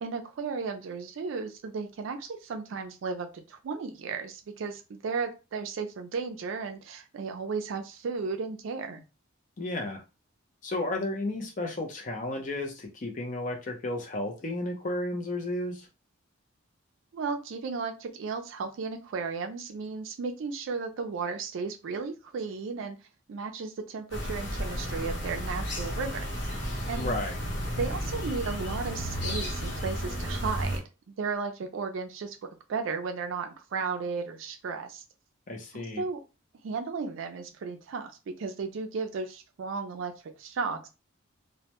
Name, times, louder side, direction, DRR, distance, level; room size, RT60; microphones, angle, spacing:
voice 1, 0.0-9.0 17.1-23.0 23.3-26.5 26.9-27.2 27.7-32.4 32.7-35.0 35.7-36.2 36.6-40.9, right 4 dB, 70° right, 0.4 m, -34 dB
voice 2, 9.6-10.0 10.6-15.9 27.0-27.4 35.5-36.0, left 2 dB, 40° left, 0.5 m, -33 dB
sound 1, 24.1-30.8, equal, 60° left, 0.9 m, -33 dB
2.1 x 2.1 x 2.8 m
head